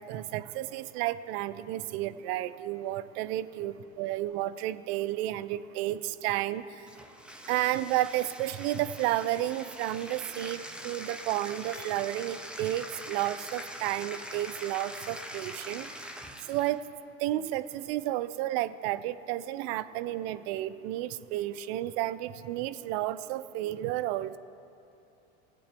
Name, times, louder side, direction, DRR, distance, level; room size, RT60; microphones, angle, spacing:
voice 1, 0.0-6.9 7.5-16.1 16.4-16.8 17.2-24.4, right 14 dB, 65° right, 14 dB, 0.6 m, -32 dB
Bathtub (filling or washing), 6.8-16.8, equal, 5° right, 0.9 m, -43 dB
19.0 x 8.5 x 3.4 m, 2.9 s
hypercardioid pair, 85°, 34 cm